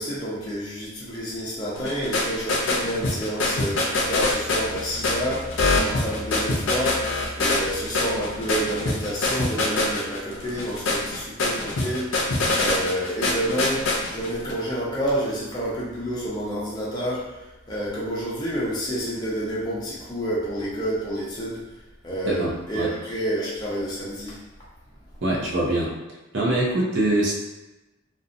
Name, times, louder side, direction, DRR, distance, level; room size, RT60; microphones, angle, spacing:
voice 1, 0.0-17.3 17.7-21.6 22.0-24.4, equal, 20° left, -7 dB, 0.6 m, -29 dB
sound 1, 1.8-14.5, left 2 dB, 75° left, 0.4 m, -25 dB
voice 2, 22.2-22.9 25.2-25.9 26.3-27.4, right 1 dB, 60° right, -3 dB, 0.6 m, -23 dB
2.6 x 2.1 x 2.5 m, 1.0 s
head